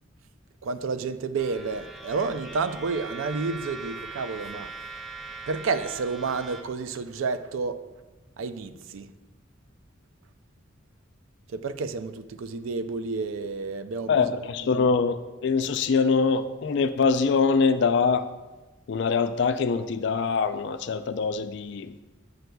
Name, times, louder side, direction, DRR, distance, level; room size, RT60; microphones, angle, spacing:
voice 1, 0.6-4.7 5.5-7.8 8.4-9.1 11.5-14.3 14.8-14.9, right 4 dB, 80° right, 0.4 m, -30 dB
sound 1, 1.4-6.6, right 3 dB, ahead, 0.5 m, -41 dB
voice 2, 14.1-18.3 18.9-21.9, left 5 dB, 60° left, 0.3 m, -24 dB
7.8 x 7.8 x 2.3 m
head